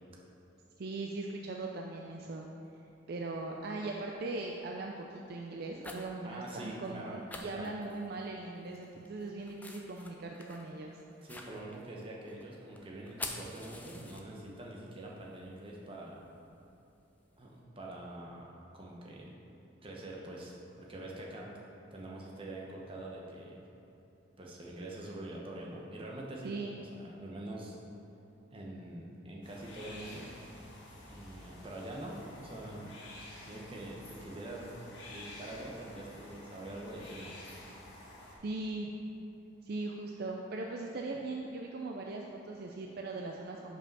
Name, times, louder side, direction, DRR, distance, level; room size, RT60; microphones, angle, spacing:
voice 1, 0.8-2.5 3.1-10.9 26.4-26.8 38.4-38.9 39.6-43.8, right 2 dB, 55° right, 1 dB, 0.4 m, -39 dB
sound 1, 2.7-2.8 3.5-3.9 4.4-4.6 5.4-6.2 6.5-6.6 6.8-7.0 7.3-8.3 8.7-14.7 15.0-17.5, left 2 dB, 10° left, 0.4 m, -48 dB
voice 2, 6.2-7.7 11.2-16.2 17.4-19.3 19.8-21.5 21.9-23.6 24.4-27.8 28.5-30.3 31.1-32.9 33.4-34.7 35.1-37.3, right 1 dB, 30° right, -3 dB, 0.9 m, -45 dB
sound 2, 29.4-38.4, left 1 dB, 65° left, 1.4 m, -50 dB
5.5 x 5.1 x 5.3 m, 2.8 s
head